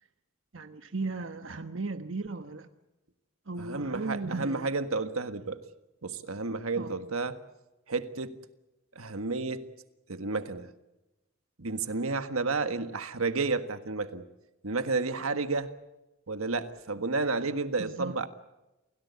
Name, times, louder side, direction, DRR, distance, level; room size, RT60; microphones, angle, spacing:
voice 1, 0.5-2.7 3.5-4.7 6.8-6.9 17.8-18.2, right 3 dB, 65° right, 7 dB, 1.2 m, -36 dB
voice 2, 3.6-5.6 6.0-7.4 7.9-8.4 8.9-9.7 10.1-10.7 11.6-14.3 14.6-15.7 16.3-18.3, right 3 dB, 90° right, 9 dB, 1.6 m, -31 dB
28.5 x 17.5 x 8.4 m, 1.0 s
head